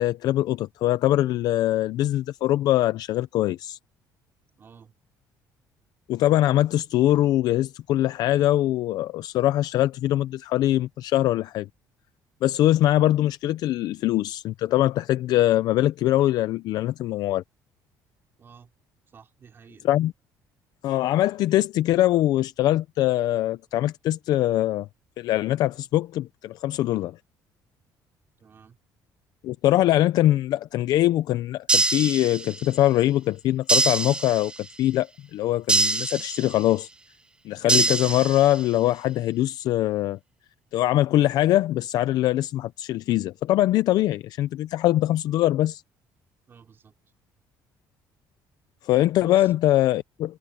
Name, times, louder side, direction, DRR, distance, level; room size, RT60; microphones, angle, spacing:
voice 1, 0.0-3.8 6.1-11.7 12.4-17.4 19.8-20.1 20.8-24.9 25.2-27.2 29.4-36.9 37.4-40.2 40.7-45.8 48.8-50.4, left 14 dB, 65° left, 0.6 m, -22 dB
voice 2, 4.6-4.9 18.4-18.7 19.1-19.9 28.4-28.8 46.5-46.9 49.2-49.5, right 6 dB, 30° right, 3.7 m, -51 dB
sound 1, 31.7-32.8 33.7-34.7 35.7-36.7 37.7-38.7, right 3 dB, 10° right, 0.5 m, -24 dB
cardioid pair, 150°, 7 cm